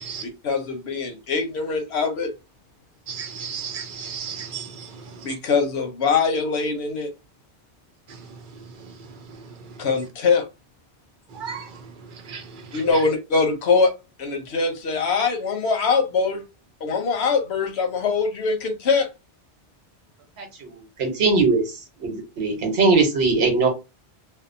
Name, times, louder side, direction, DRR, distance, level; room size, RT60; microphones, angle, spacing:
voice 1, 0.2-2.3 5.2-7.1 9.8-10.4 12.7-13.9 14.2-16.4 16.8-19.1, left 4 dB, 85° left, 1.0 m, -22 dB
voice 2, 3.1-4.7 11.4-11.6 12.3-12.4, right 7 dB, 60° right, 0.6 m, -33 dB
voice 3, 20.4-21.6 22.0-23.7, right 3 dB, 80° right, 1.1 m, -20 dB
2.7 x 2.0 x 2.5 m
omnidirectional pair, 1.1 m